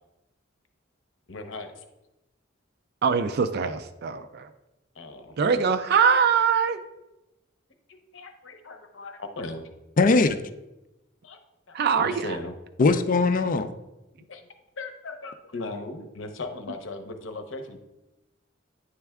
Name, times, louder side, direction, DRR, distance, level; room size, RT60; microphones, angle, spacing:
voice 1, 1.3-1.8 4.9-5.6 7.9-9.7 11.2-11.4 11.7-12.6 14.3-14.5 14.8-17.8, left 2 dB, 75° left, 6 dB, 0.8 m, -38 dB
voice 2, 3.0-4.5 5.4-6.8 11.7-12.2, right 6 dB, 55° right, 10 dB, 0.4 m, -23 dB
voice 3, 10.0-10.4 12.8-13.7, left 3 dB, 45° left, 10 dB, 0.4 m, -20 dB
9.5 x 3.3 x 3.5 m, 0.97 s
head